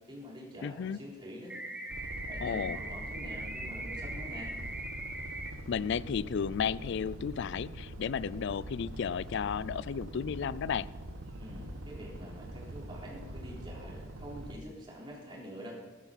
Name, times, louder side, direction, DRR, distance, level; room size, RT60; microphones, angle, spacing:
voice 1, 0.1-1.6 2.3-4.5 11.4-15.8, equal, 25° right, -5 dB, 3.9 m, -46 dB
voice 2, 0.6-1.0 2.4-2.8 5.7-10.9, left 7 dB, 60° left, 19 dB, 0.3 m, -33 dB
sound 1, 1.5-5.5, right 2 dB, 5° right, 0.9 m, -40 dB
sound 2, 1.9-14.6, right 1 dB, 75° right, 1.1 m, -43 dB
15.5 x 12.0 x 4.1 m, 1.2 s
head